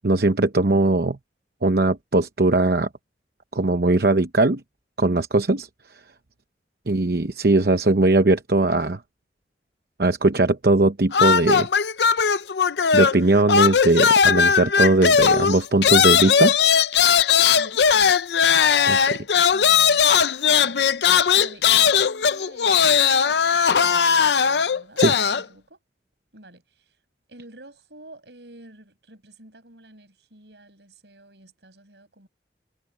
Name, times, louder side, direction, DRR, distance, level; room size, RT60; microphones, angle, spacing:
voice 1, 0.0-1.2 1.6-2.9 3.5-4.6 5.0-5.7 6.9-9.0 10.0-11.7 12.9-16.5 18.9-19.2 25.0-25.1, right 2 dB, 60° right, 0.9 m, -19 dB
voice 2, 6.8-7.2 17.5-17.9 19.5-20.1 20.4-20.9 21.3-25.8 26.3-27.0 27.3-32.3, right 1 dB, 80° right, 6.5 m, -49 dB
sound 1, 11.1-13.2 13.5-25.4, left 7 dB, 75° left, 0.6 m, -18 dB
head